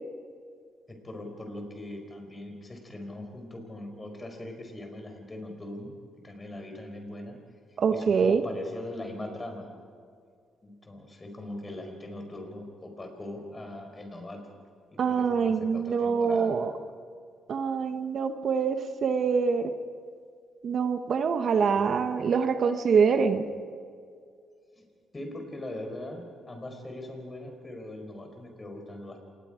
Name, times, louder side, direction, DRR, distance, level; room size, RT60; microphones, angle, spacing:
voice 1, 0.9-5.9 6.2-7.4 7.9-9.6 10.6-14.4 14.9-16.6 21.8-22.1 24.7-24.9 25.1-29.2, left 1 dB, 25° left, 4 dB, 4.6 m, -41 dB
voice 2, 7.8-8.4 15.0-16.7 17.5-19.7 20.6-23.4, right 6 dB, 55° right, 8 dB, 1.1 m, -25 dB
27.0 x 20.0 x 5.1 m, 2.2 s
cardioid pair, 90°, 0 cm